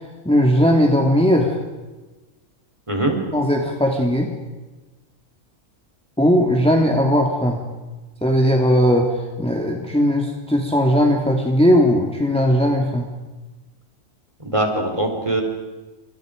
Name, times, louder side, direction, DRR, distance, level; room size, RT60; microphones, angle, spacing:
voice 1, 0.2-1.6 3.3-4.3 6.2-7.6 8.2-13.1, equal, 5° left, 0 dB, 2.5 m, -18 dB
voice 2, 14.4-15.4, right 1 dB, 20° right, 3 dB, 4.3 m, -21 dB
29.5 x 27.0 x 5.2 m, 1.2 s
omnidirectional pair, 1.4 m